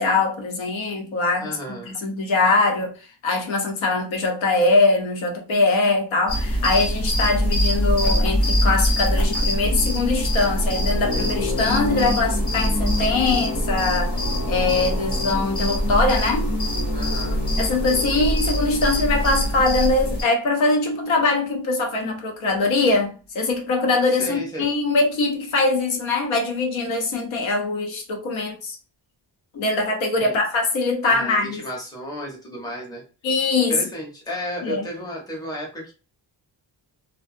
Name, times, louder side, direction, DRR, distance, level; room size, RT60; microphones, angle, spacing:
voice 1, 0.0-1.5 1.9-14.2 14.5-16.5 17.6-28.8 29.5-31.6 33.2-33.8 34.6-34.8, left 3 dB, 85° left, 0.8 m, -22 dB
voice 2, 1.4-1.9 16.9-17.4 18.1-18.2 24.1-24.7 30.2-30.4 31.0-33.0 33.7-35.9, equal, 10° left, 0.7 m, -33 dB
sound 1, 6.3-20.2, equal, 55° left, 1.4 m, -23 dB
2.4 x 2.2 x 2.6 m
wide cardioid pair, 160°, 46 cm